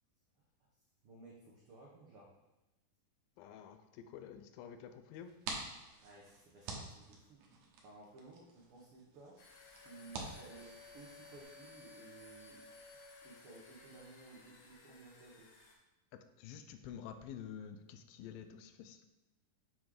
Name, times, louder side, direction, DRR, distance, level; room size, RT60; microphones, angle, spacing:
voice 1, 1.0-2.4 6.0-7.4 7.8-9.4 9.8-12.7 13.2-15.5, right 3 dB, 90° right, -4 dB, 1.2 m, -56 dB
voice 2, 3.4-3.8 4.1-5.3 16.4-19.1, left 8 dB, 90° left, 9 dB, 2.3 m, -49 dB
sound 1, 5.1-11.4, right 3 dB, 70° right, 2.1 m, -49 dB
sound 2, 9.4-15.8, left 3 dB, 70° left, 2.5 m, -57 dB
7.2 x 3.8 x 4.7 m, 0.98 s
omnidirectional pair, 4.0 m